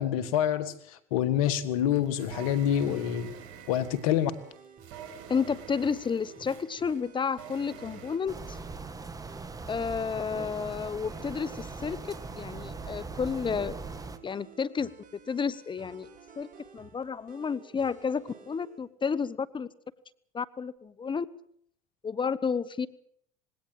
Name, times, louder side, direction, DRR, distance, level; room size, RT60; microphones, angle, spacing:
voice 1, 0.0-3.3 3.7-4.3, left 10 dB, 80° left, 15 dB, 1.9 m, -27 dB
sound 1, 1.5-8.2, right 8 dB, 70° right, 5.1 m, -47 dB
sound 2, 2.8-18.8, right 6 dB, 50° right, 4.8 m, -54 dB
voice 2, 5.3-8.6 9.7-13.8 14.2-14.9 15.3-16.1 16.4-16.5 16.7-19.7 20.3-21.3 22.0-22.9, left 6 dB, 25° left, 18 dB, 1.0 m, -31 dB
sound 3, 8.3-14.2, right 3 dB, 20° right, 2.0 m, -40 dB
20.5 x 17.5 x 7.8 m, 0.66 s
hypercardioid pair, 80°, 18 cm